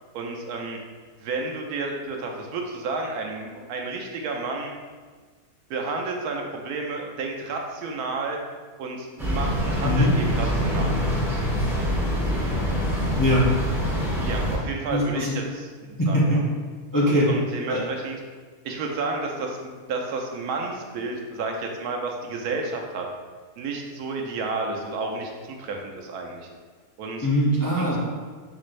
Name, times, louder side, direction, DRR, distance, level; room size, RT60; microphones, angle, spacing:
voice 1, 0.1-0.8 1.2-4.7 5.7-8.4 8.8-11.0 14.2-16.4 17.0-18.2 18.6-23.0 23.6-26.5 27.0-27.3 27.8-27.9, right 3 dB, 90° right, 1 dB, 1.2 m, -31 dB
sound 1, 9.2-14.6, equal, ahead, 1.2 m, -25 dB
voice 2, 9.8-10.1 13.2-13.4 14.9-15.4 16.0-16.4 16.9-17.3 17.7-17.8 27.2-28.0, equal, 25° left, -6 dB, 0.4 m, -21 dB
6.3 x 3.1 x 2.5 m, 1.5 s
omnidirectional pair, 1.6 m